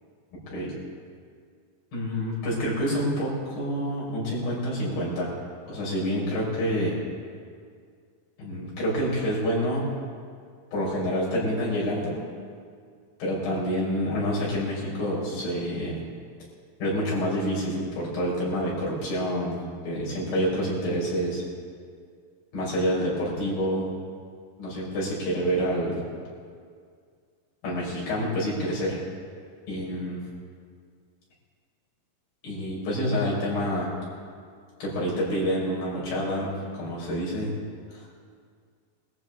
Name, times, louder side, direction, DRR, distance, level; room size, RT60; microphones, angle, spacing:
voice 1, 1.9-5.3 5.7-6.9 8.4-9.9 10.7-12.2 13.2-16.0 16.8-21.4 22.5-23.9 24.6-26.0 27.6-29.0 29.7-30.2 32.4-33.9 34.8-37.5 37.9-38.0, equal, 75° left, -6 dB, 7.0 m, -27 dB
21.5 x 14.5 x 3.8 m, 2.1 s
omnidirectional pair, 4.2 m